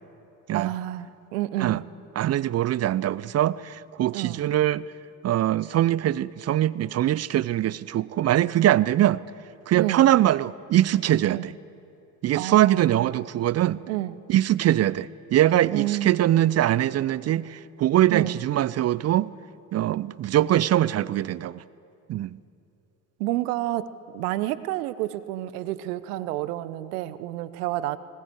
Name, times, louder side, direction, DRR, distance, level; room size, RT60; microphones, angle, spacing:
voice 1, 0.5-1.8 4.1-4.5 9.8-10.1 11.3-11.5 12.3-13.1 13.9-14.1 15.7-16.1 18.1-18.4 23.2-28.0, right 15 dB, 75° right, 15 dB, 1.0 m, -29 dB
voice 2, 2.2-4.9 5.2-9.2 9.7-11.5 12.2-13.8 14.3-19.3 19.7-21.6 22.1-22.3, right 13 dB, 35° right, 20 dB, 0.5 m, -22 dB
20.5 x 19.0 x 8.0 m, 2.7 s
hypercardioid pair, 60°, 46 cm